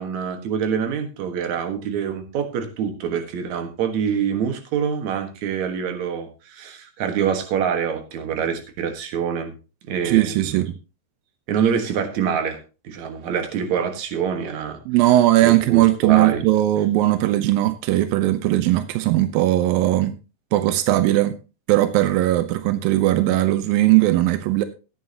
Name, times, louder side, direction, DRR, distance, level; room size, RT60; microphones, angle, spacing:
voice 1, 0.0-9.5 9.9-10.6 11.5-12.6 12.8-14.8 15.4-16.4, right 7 dB, 55° right, 6 dB, 2.3 m, -25 dB
voice 2, 10.0-10.8 14.9-20.2 20.5-21.3 21.7-24.6, right 15 dB, 80° right, 11 dB, 2.1 m, -18 dB
15.0 x 9.6 x 2.9 m, 0.31 s
omnidirectional pair, 4.9 m